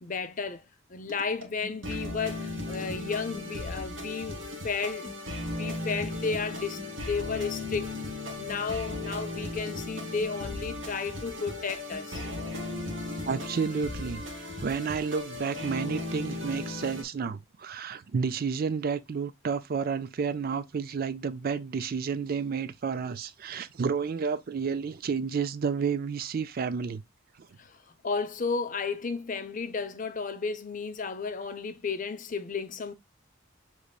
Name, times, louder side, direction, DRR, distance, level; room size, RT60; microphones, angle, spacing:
voice 1, 0.0-7.9 8.4-12.2 27.6-27.8 28.0-32.9, left 5 dB, 40° left, 0.5 m, -33 dB
sound 1, 1.1-17.0, left 2 dB, 65° right, 1.5 m, -36 dB
voice 2, 13.3-14.2 14.6-27.0, right 6 dB, 45° right, 0.4 m, -31 dB
6.6 x 3.1 x 2.3 m
head